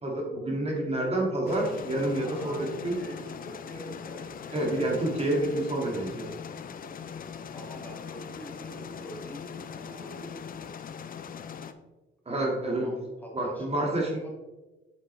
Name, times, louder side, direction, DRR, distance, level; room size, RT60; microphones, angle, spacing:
voice 1, 0.0-3.0 4.5-6.3 12.3-12.9 13.3-14.3, right 1 dB, 30° right, -1 dB, 2.1 m, -28 dB
sound 1, 1.5-11.7, left 7 dB, 45° left, 0.6 m, -41 dB
voice 2, 2.2-5.5 7.5-10.4 12.6-14.3, right 1 dB, 10° left, -2 dB, 2.2 m, -45 dB
7.5 x 7.4 x 3.3 m, 1.1 s
cardioid pair, 90°, 20 cm